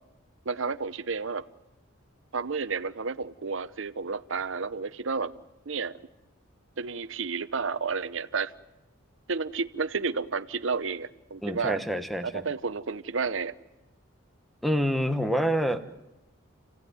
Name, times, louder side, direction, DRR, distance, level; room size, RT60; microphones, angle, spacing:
voice 1, 0.4-1.4 2.3-5.3 5.7-6.0 6.8-8.5 9.3-11.8 12.2-13.5, right 4 dB, 65° right, 11 dB, 0.8 m, -31 dB
voice 2, 11.4-12.4 14.6-15.9, equal, ahead, 9 dB, 1.2 m, -27 dB
29.5 x 16.0 x 9.4 m, 1.0 s
head